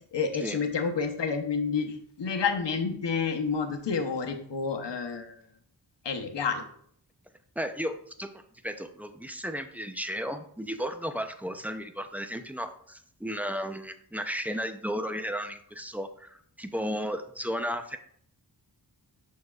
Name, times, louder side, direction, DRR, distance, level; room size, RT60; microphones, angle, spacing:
voice 1, 0.1-5.3 6.0-6.6, left 5 dB, 90° left, 5 dB, 0.9 m, -29 dB
voice 2, 7.6-18.0, equal, 5° right, 8 dB, 0.6 m, -34 dB
6.5 x 6.5 x 2.4 m, 0.64 s
wide cardioid pair, 55°, 42 cm